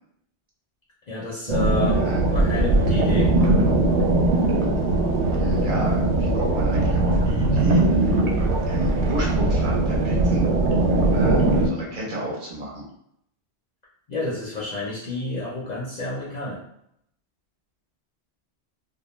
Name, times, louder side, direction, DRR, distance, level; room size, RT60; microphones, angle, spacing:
voice 1, 1.1-3.3 14.1-16.6, left 2 dB, 55° left, -5 dB, 0.5 m, -30 dB
sound 1, 1.5-11.7, right 2 dB, 90° right, 0.9 m, -20 dB
voice 2, 2.0-2.4 5.3-7.8 8.1-8.2 8.7-10.5 11.1-12.8, right 1 dB, 55° right, -3 dB, 0.8 m, -31 dB
2.2 x 2.2 x 3.0 m, 0.73 s
omnidirectional pair, 1.1 m